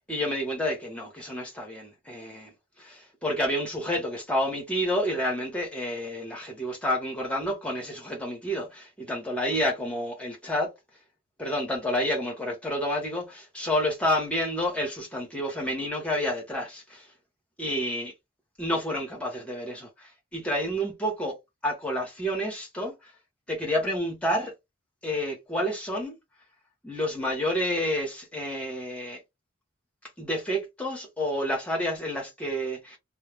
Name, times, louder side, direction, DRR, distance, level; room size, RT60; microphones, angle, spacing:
voice 1, 0.0-2.5 2.8-10.7 11.4-17.0 17.6-18.1 18.6-21.4 21.6-22.9 23.5-24.5 25.0-26.1 26.8-29.2 30.2-33.0, equal, 5° left, 1.0 m, -29 dB
2.3 x 2.2 x 3.3 m
head